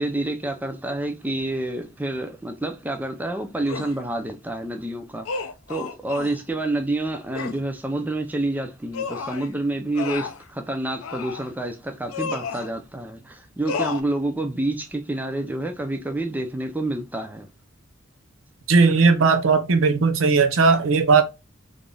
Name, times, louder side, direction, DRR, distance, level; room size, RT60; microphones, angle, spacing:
voice 1, 0.0-17.5, right 2 dB, 10° right, 0.4 m, -28 dB
sound 1, 3.7-4.0 5.2-6.4 7.3-7.6 8.9-9.5 9.9-10.4 11.0-11.5 12.1-12.7 13.7-14.0, left 5 dB, 85° left, 0.4 m, -31 dB
voice 2, 18.7-21.2, right 4 dB, 70° right, 0.6 m, -17 dB
3.4 x 2.5 x 2.2 m
head